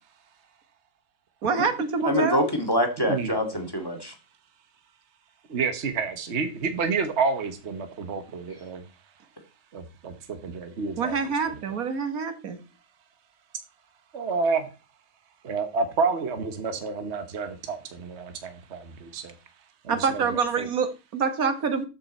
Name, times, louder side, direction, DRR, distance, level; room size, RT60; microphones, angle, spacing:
voice 1, 1.4-2.5 11.0-12.6 19.9-21.9, right 5 dB, 75° right, 1.9 m, -26 dB
voice 2, 2.1-4.1, equal, 15° left, 2.0 m, -25 dB
voice 3, 3.1-3.7 5.5-8.9 9.7-11.2 14.1-14.7 15.4-19.3 19.8-20.7, right 4 dB, 50° right, 1.4 m, -29 dB
13.5 x 5.6 x 4.3 m
omnidirectional pair, 1.6 m